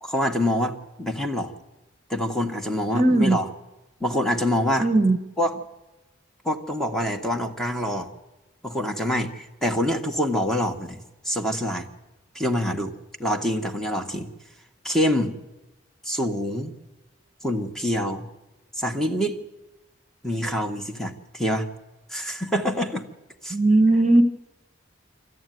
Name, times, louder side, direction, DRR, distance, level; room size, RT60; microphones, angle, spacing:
voice 1, 0.0-1.5 2.1-3.5 4.0-4.9 5.4-5.6 6.4-8.1 8.6-11.0 11.2-11.9 12.3-12.9 13.2-14.3 14.8-15.3 16.0-16.7 17.4-18.3 18.8-19.4 20.2-21.7 22.1-23.0 23.4-23.6, equal, 5° left, 3 dB, 1.6 m, -26 dB
voice 2, 2.9-3.4 4.8-5.2 23.5-24.2, right 2 dB, 40° right, 10 dB, 1.2 m, -18 dB
26.5 x 13.5 x 9.3 m, 1.1 s
head